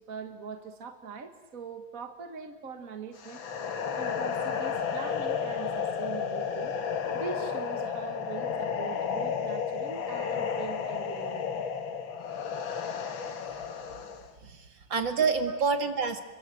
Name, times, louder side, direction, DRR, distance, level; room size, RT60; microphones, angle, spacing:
voice 1, 0.0-3.4 4.0-6.7 7.1-11.5 14.8-14.9 15.5-15.6, right 5 dB, 40° right, 7 dB, 1.9 m, -42 dB
sound 1, 3.2-14.3, left 6 dB, 60° left, 2.3 m, -32 dB
voice 2, 14.4-16.2, right 5 dB, 55° right, 7 dB, 2.8 m, -28 dB
29.0 x 23.5 x 7.8 m, 1.2 s
omnidirectional pair, 2.4 m